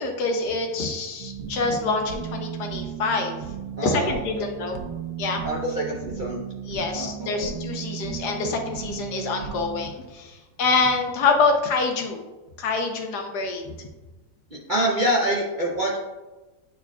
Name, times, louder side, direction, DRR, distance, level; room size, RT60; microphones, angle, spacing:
voice 1, 0.0-3.4 3.8-4.8 5.2-5.4 6.6-12.2 12.6-13.9, left 4 dB, 70° left, 3 dB, 1.4 m, -26 dB
sound 1, 1.2-9.9, right 8 dB, 90° right, 1.3 m, -35 dB
voice 2, 3.8-4.5 5.4-6.4 6.9-7.5 14.5-16.0, right 1 dB, 45° right, -4 dB, 0.6 m, -26 dB
9.6 x 4.6 x 2.3 m, 1.1 s
omnidirectional pair, 1.9 m